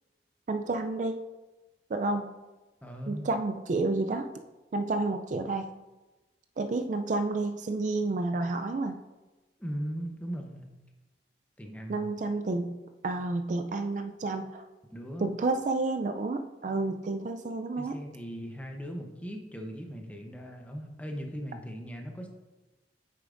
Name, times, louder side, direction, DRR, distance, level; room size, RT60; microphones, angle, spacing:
voice 1, 0.5-1.2 1.9-2.3 3.1-4.3 4.7-5.7 6.6-9.0 11.9-12.8 13.0-14.6 15.2-18.0, right 3 dB, 45° right, 6 dB, 0.3 m, -30 dB
voice 2, 2.8-3.3 9.6-10.7 11.6-12.1 14.9-15.3 17.8-22.3, equal, 10° left, 2 dB, 0.7 m, -38 dB
8.8 x 6.7 x 2.5 m, 1.1 s
head